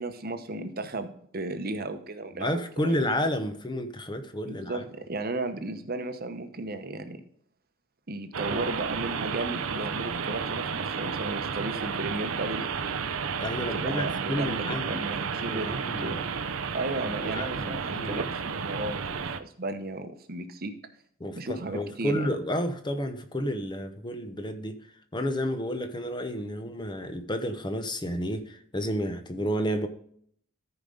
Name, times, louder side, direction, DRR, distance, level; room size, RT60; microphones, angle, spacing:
voice 1, 0.0-2.9 4.5-7.2 8.1-12.7 13.7-16.2 16.7-20.7 21.4-22.3, right 2 dB, 45° right, 1.0 m, -34 dB
voice 2, 2.4-4.8 13.4-15.1 15.4-16.2 17.1-18.3 21.2-24.8 25.1-29.9, equal, 20° left, 0.9 m, -31 dB
sound 1, 8.3-19.4, right 6 dB, 70° right, 0.7 m, -32 dB
13.5 x 5.1 x 3.9 m
head